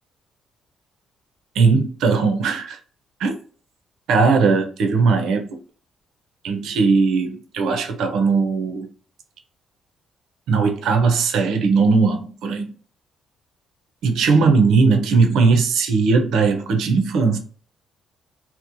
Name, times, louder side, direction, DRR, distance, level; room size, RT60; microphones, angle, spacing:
voice 1, 1.6-2.8 3.2-3.3 4.1-5.6 6.4-8.9 10.5-12.7 14.0-17.4, right 4 dB, 80° right, 0.5 m, -18 dB
2.9 x 2.0 x 2.5 m
cardioid pair, 90°, 0 cm